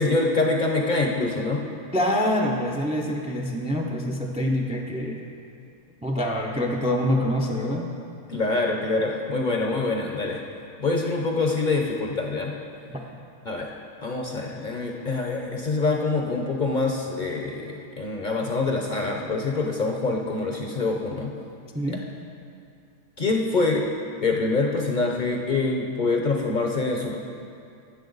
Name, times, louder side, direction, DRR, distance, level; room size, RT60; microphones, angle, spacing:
voice 1, 0.0-1.6 8.3-10.4 10.8-12.5 13.4-13.7 14.0-21.3 21.9-22.0 23.2-23.8 24.2-27.2, left 3 dB, 40° left, 0 dB, 0.7 m, -25 dB
voice 2, 1.9-5.2 6.0-7.9 12.9-13.0 21.7-22.0, left 1 dB, 10° right, 2 dB, 0.4 m, -25 dB
17.0 x 6.7 x 4.0 m, 2.5 s
omnidirectional pair, 1.5 m